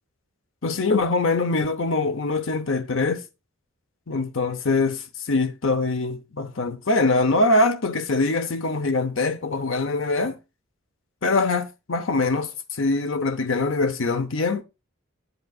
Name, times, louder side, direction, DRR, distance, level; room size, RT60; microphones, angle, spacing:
voice 1, 0.6-3.2 4.1-10.4 11.2-14.6, left 3 dB, 65° left, 0.8 m, -23 dB
9.2 x 8.0 x 2.4 m
head